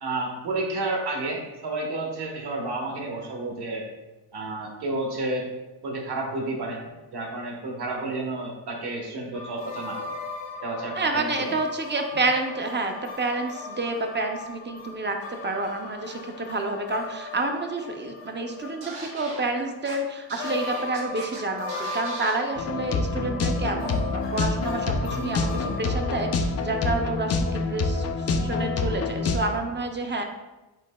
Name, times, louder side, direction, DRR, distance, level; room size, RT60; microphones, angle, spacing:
voice 1, 0.0-3.8 4.3-5.5 5.8-6.8 7.1-10.1 10.6-11.5, right 2 dB, 55° right, 0 dB, 1.2 m, -31 dB
sound 1, 9.3-20.1 20.4-26.3, left 3 dB, 65° left, 0.8 m, -38 dB
voice 2, 11.0-28.1 28.4-30.2, right 2 dB, 25° right, 4 dB, 0.5 m, -29 dB
Scratching (performance technique), 18.8-19.4 19.9-20.0 20.3-21.4 21.7-22.4, right 3 dB, 80° right, 1.3 m, -39 dB
sound 2, 22.6-29.4, left 3 dB, 35° left, 0.4 m, -27 dB
8.1 x 2.8 x 2.2 m, 1.1 s
cardioid pair, 110°, 47 cm